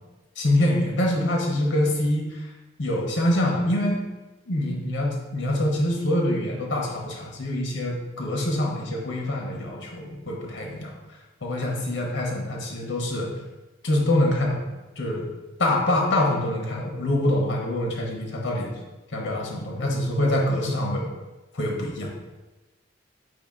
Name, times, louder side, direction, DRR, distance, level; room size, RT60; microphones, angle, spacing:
voice 1, 0.4-2.5 2.8-4.0 4.5-10.9 11.4-13.3 13.8-14.6 15.0-15.3 15.6-18.7 19.1-21.1 21.5-22.1, left 1 dB, 65° left, -1 dB, 0.9 m, -25 dB
5.0 x 2.8 x 3.6 m, 1.1 s
head